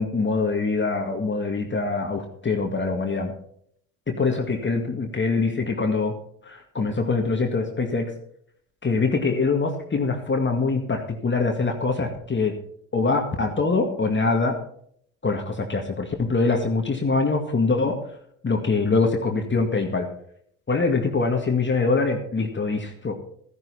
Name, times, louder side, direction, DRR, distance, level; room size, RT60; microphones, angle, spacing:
voice 1, 0.0-3.3 4.1-6.1 6.4-8.1 8.8-12.6 12.9-14.6 15.2-18.0 18.4-20.1 20.7-23.1, left 3 dB, 30° left, 3 dB, 1.9 m, -24 dB
13.0 x 11.0 x 4.2 m, 0.66 s
hypercardioid pair, 60°, 40 cm